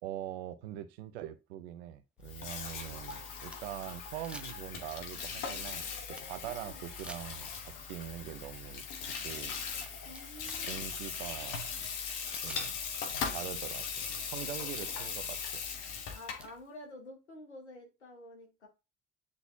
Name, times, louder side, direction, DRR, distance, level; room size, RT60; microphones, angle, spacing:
voice 1, 0.0-8.8 9.2-9.6 10.7-11.6 12.3-12.7 13.3-15.6, right 12 dB, 75° right, 0.8 m, -43 dB
sound 1, 1.2-1.3 2.2-4.0 4.2-4.9 5.2-6.5 7.0-7.7 9.1-9.2 9.6-10.7 11.0-11.1 12.3-12.7 14.0-14.1 14.4-14.5 15.0-15.1 15.9-16.5, right 1 dB, 5° right, 0.9 m, -51 dB
Water tap faucet / Sink (filling or washing), 2.2-16.5, left 6 dB, 65° left, 1.4 m, -39 dB
voice 2, 6.4-6.8 10.0-11.4 16.1-18.7, left 1 dB, 90° left, 1.4 m, -50 dB
9.8 x 4.0 x 2.7 m
figure-of-eight pair, 45°, 33 cm